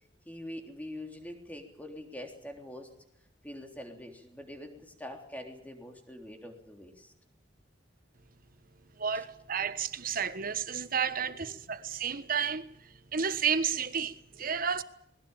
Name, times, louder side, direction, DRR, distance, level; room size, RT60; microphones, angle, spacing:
voice 1, 0.3-2.9 3.4-7.1 11.3-11.5, left 1 dB, 10° left, 3.5 m, -44 dB
voice 2, 9.0-14.8, right 7 dB, 50° right, 1.2 m, -32 dB
21.0 x 19.5 x 9.0 m
head